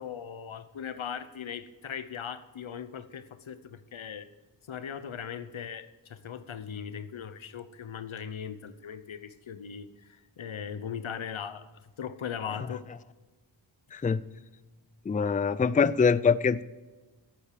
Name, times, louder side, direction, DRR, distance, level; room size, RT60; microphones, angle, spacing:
voice 1, 0.0-4.3 4.7-12.8, left 7 dB, 90° left, 12 dB, 0.9 m, -39 dB
voice 2, 13.9-14.2 15.1-16.6, left 5 dB, 20° left, 17 dB, 0.4 m, -24 dB
11.5 x 8.7 x 6.9 m, 1.3 s
cardioid pair, 45°, 46 cm